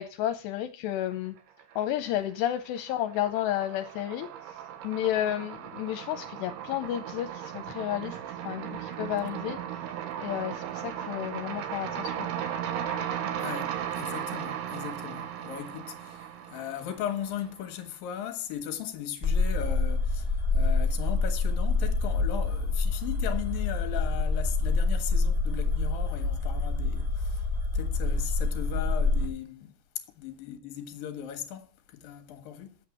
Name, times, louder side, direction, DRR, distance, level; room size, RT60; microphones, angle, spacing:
voice 1, 0.0-1.4 1.8-4.6 4.8-8.2 8.4-9.6 10.2-12.3, left 12 dB, 80° left, 2.8 m, -31 dB
sound 1, 1.4-2.1 2.4-17.6, right 9 dB, 70° right, 3.1 m, -36 dB
voice 2, 13.4-27.5 27.7-29.7 30.1-32.8, left 10 dB, 60° left, 3.0 m, -38 dB
sound 2, 19.2-29.3, left 3 dB, 25° right, 0.7 m, -26 dB
9.0 x 8.0 x 7.4 m
omnidirectional pair, 5.0 m